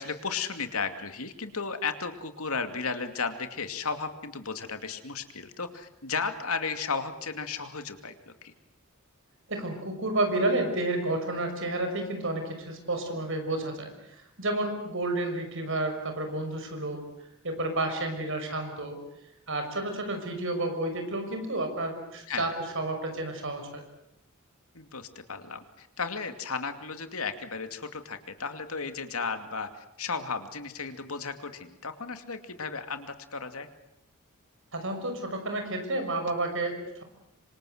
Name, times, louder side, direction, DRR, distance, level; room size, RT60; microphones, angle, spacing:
voice 1, 0.0-8.5 22.3-22.5 24.7-33.7, left 5 dB, 75° left, 8 dB, 2.6 m, -34 dB
voice 2, 9.5-17.0 17.4-19.0 19.5-22.5 22.7-23.7 34.7-37.0, right 2 dB, 60° right, 6 dB, 6.2 m, -31 dB
26.5 x 26.0 x 8.0 m, 0.80 s
head